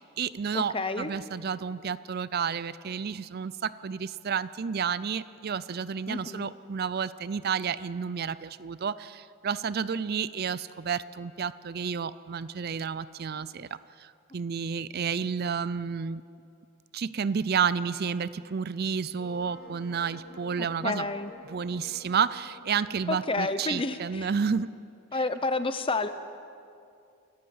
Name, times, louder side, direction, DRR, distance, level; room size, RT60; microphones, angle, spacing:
voice 1, 0.0-13.7 14.0-16.2 16.9-21.1 21.5-24.7 25.1-25.2, right 6 dB, 45° right, 16 dB, 0.4 m, -31 dB
voice 2, 0.5-1.1 6.1-6.5 20.6-21.3 23.1-24.3 25.1-26.1, left 3 dB, 25° left, 11 dB, 0.8 m, -30 dB
Wind instrument woodwind instrument, 19.1-24.2, left 1 dB, 45° left, 7.7 m, -50 dB
28.5 x 13.5 x 7.8 m, 2.5 s
head